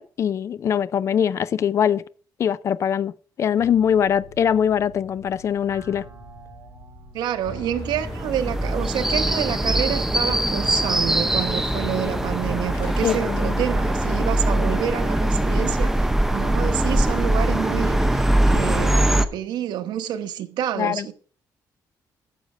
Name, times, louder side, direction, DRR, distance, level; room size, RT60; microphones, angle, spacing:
voice 1, 0.0-2.0 2.4-3.1 3.4-6.1 13.0-13.6 20.8-21.1, left 8 dB, 40° left, 0.4 m, -22 dB
sound 1, 3.6-19.4, equal, 40° right, 3.7 m, -48 dB
voice 2, 7.1-21.1, right 10 dB, 90° right, 1.1 m, -28 dB
sound 2, 7.4-14.7, left 2 dB, 90° left, 3.5 m, -40 dB
sound 3, 7.8-19.2, right 1 dB, 5° right, 0.7 m, -22 dB
9.8 x 6.9 x 6.2 m
cardioid pair, 160°, 7 cm